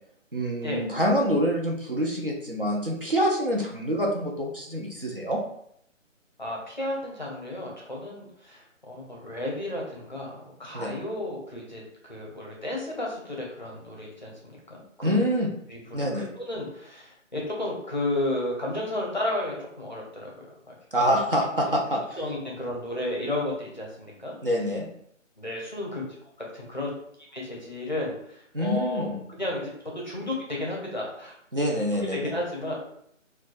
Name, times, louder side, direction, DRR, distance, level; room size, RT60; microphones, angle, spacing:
voice 1, 0.3-5.4 10.7-10.9 15.0-15.5 15.9-16.3 20.9-22.0 24.4-24.8 28.5-29.2 31.5-32.3, equal, 45° right, -1 dB, 0.5 m, -26 dB
voice 2, 6.4-15.1 15.7-21.0 22.2-24.3 25.4-26.0 26.4-26.9 27.3-29.6 29.9-31.3 31.9-32.7, left 1 dB, 35° left, -3 dB, 0.6 m, -33 dB
2.4 x 2.2 x 3.9 m, 0.71 s
figure-of-eight pair, 175°, 39 cm